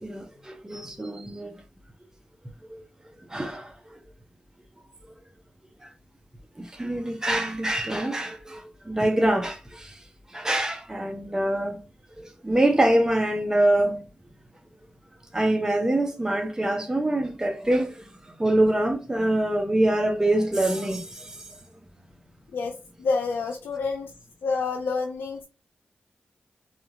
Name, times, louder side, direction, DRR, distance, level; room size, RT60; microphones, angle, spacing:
voice 1, 0.0-1.5 2.7-2.8 3.3-4.0 6.6-10.0 10.3-11.8 12.2-14.0 15.3-18.1 18.4-21.5, right 1 dB, 15° right, 0.7 m, -25 dB
voice 2, 22.5-24.1 24.4-25.5, left 4 dB, 85° left, 0.4 m, -28 dB
2.8 x 2.4 x 2.7 m
cardioid pair, 45°, 4 cm